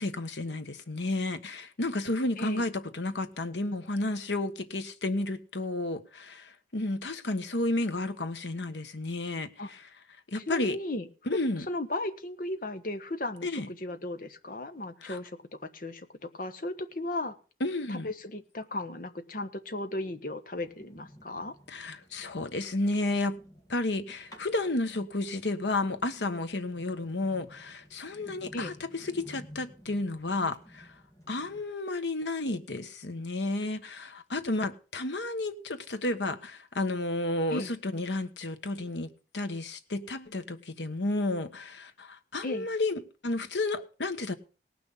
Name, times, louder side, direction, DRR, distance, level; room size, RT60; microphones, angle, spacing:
voice 1, 0.0-9.8 10.3-10.8 11.3-11.7 13.4-13.7 15.0-15.2 17.6-18.1 21.7-23.4 23.7-30.9 31.3-44.3, left 2 dB, 90° left, 1.3 m, -32 dB
voice 2, 10.5-15.4 15.7-17.4 17.9-21.6 28.5-28.7 37.5-37.7 42.4-42.7, left 1 dB, 50° left, 1.2 m, -36 dB
sound 1, 20.5-31.6, equal, 20° left, 3.2 m, -53 dB
18.5 x 6.2 x 7.1 m
head